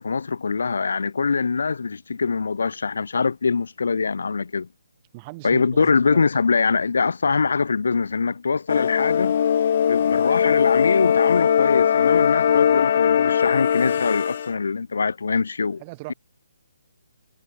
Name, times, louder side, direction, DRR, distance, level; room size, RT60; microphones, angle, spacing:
voice 1, 0.0-4.7 5.4-9.4 9.9-15.8, left 5 dB, 75° left, 1.0 m, -23 dB
voice 2, 5.1-6.2 15.8-16.1, right 24 dB, 20° right, 1.9 m, -39 dB
sound 1, 8.7-14.5, left 8 dB, 45° left, 0.3 m, -20 dB
hypercardioid pair, 165°, 0 cm